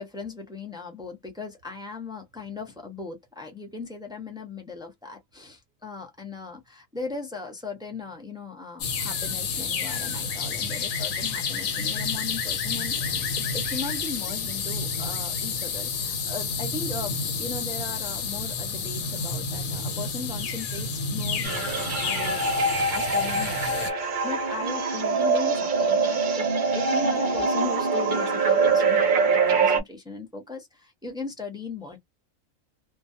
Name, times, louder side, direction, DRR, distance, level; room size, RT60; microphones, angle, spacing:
voice 1, 0.0-26.5 26.7-32.0, left 4 dB, 5° right, 0.3 m, -38 dB
sound 1, 8.8-23.9, left 5 dB, 75° left, 1.1 m, -30 dB
sound 2, 21.4-29.8, right 4 dB, 50° right, 0.6 m, -24 dB
2.3 x 2.2 x 2.6 m
omnidirectional pair, 1.4 m